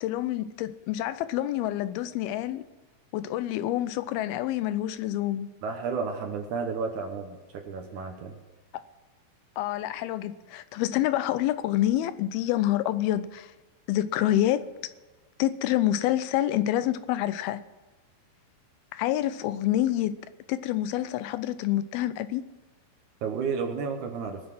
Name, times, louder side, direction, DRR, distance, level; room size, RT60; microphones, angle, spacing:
voice 1, 0.0-2.6 3.1-5.5 8.7-8.8 9.6-13.5 13.9-14.9 15.4-17.6 18.9-20.1 20.5-22.4, left 13 dB, 85° left, 2.5 m, -27 dB
voice 2, 5.6-8.3 23.2-24.4, right 5 dB, 65° right, 2.1 m, -32 dB
21.5 x 7.4 x 6.1 m
omnidirectional pair, 4.5 m